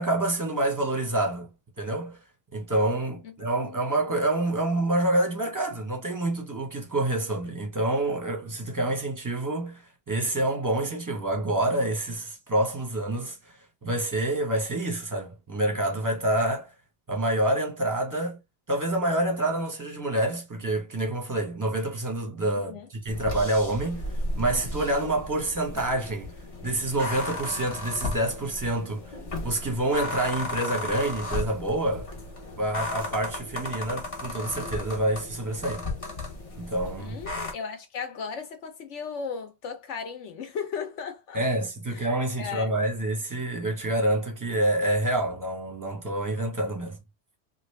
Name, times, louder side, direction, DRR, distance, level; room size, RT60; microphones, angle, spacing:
voice 1, 0.0-1.5 1.8-2.2 2.5-9.8 10.1-13.4 13.8-16.7 17.1-18.4 18.7-24.0 24.3-26.3 26.6-29.0 29.4-32.1 32.6-35.8 36.6-37.2 41.3-47.0, right 1 dB, 15° right, 0.8 m, -27 dB
voice 2, 3.6-4.0 22.7-22.9 37.0-41.4 41.9-42.1 42.4-42.7, left 6 dB, 70° left, 1.2 m, -36 dB
sound 1, 23.1-37.5, left 2 dB, 30° left, 0.8 m, -35 dB
3.1 x 2.5 x 3.2 m
omnidirectional pair, 1.3 m